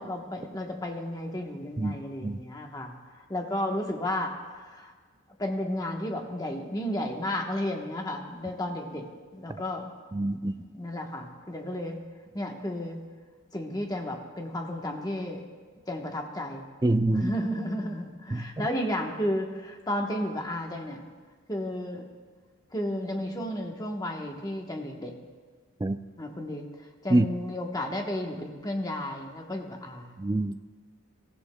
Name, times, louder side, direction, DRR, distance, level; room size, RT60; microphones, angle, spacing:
voice 1, 0.0-3.0 3.3-4.3 4.6-4.9 5.4-9.1 9.3-9.9 10.4-12.0 12.3-13.0 13.5-15.4 15.9-16.7 17.1-21.0 21.5-22.1 22.7-25.1 26.2-26.6 27.0-30.1, left 1 dB, 15° left, 1 dB, 1.1 m, -33 dB
voice 2, 10.1-10.5 16.8-17.3 18.3-18.7 25.8-26.0 27.1-27.3 30.2-30.6, right 2 dB, 15° right, 10 dB, 0.3 m, -25 dB
22.5 x 15.0 x 2.3 m, 1.5 s
head